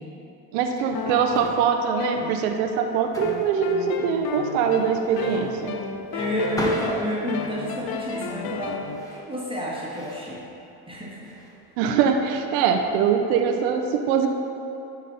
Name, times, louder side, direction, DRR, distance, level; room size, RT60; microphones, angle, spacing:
voice 1, 0.5-5.8 11.8-14.3, right 6 dB, 90° right, 5 dB, 0.7 m, -23 dB
sound 1, 0.6-13.6, equal, 5° left, 1.3 m, -40 dB
sound 2, 0.9-2.8 3.2-9.0, left 6 dB, 55° left, 0.7 m, -34 dB
voice 2, 6.1-8.8 9.1-10.5 10.9-11.3, equal, 10° right, -6 dB, 1.6 m, -29 dB
11.5 x 4.1 x 4.1 m, 2.9 s
supercardioid pair, 70°, 46 cm